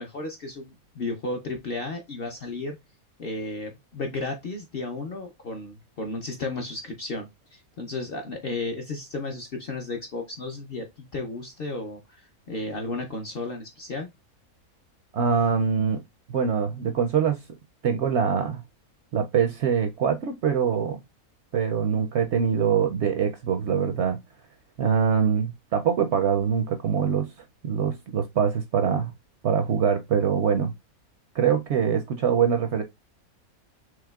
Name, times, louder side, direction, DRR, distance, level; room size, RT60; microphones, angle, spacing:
voice 1, 0.0-2.8 3.2-10.9 11.1-12.0 12.5-14.1, left 2 dB, 55° left, 0.6 m, -33 dB
voice 2, 15.1-16.0 16.3-17.4 17.8-18.6 19.1-21.0 21.5-24.2 24.8-27.3 27.6-29.1 29.4-30.7 31.3-32.8, right 7 dB, 70° right, 0.7 m, -23 dB
4.9 x 3.2 x 2.3 m
omnidirectional pair, 1.6 m